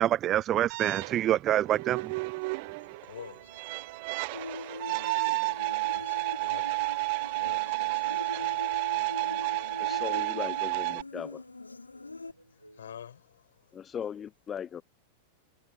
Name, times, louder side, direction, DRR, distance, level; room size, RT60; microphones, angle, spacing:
voice 1, 0.0-2.1, right 12 dB, 30° right, 0.3 m, -26 dB
sound 1, 0.7-11.0, right 28 dB, 45° right, 0.8 m, -31 dB
sound 2, 1.7-13.2, right 1 dB, 90° right, 2.7 m, -58 dB
voice 2, 2.8-3.7 5.9-6.7 7.3-8.7 12.5-13.7, left 9 dB, 65° left, 7.3 m, -49 dB
Human voice, 4.3-12.3, left 3 dB, 80° left, 3.6 m, -42 dB
voice 3, 9.8-11.4 13.7-14.8, left 8 dB, 25° left, 0.6 m, -38 dB
figure-of-eight pair, 90°, 0 cm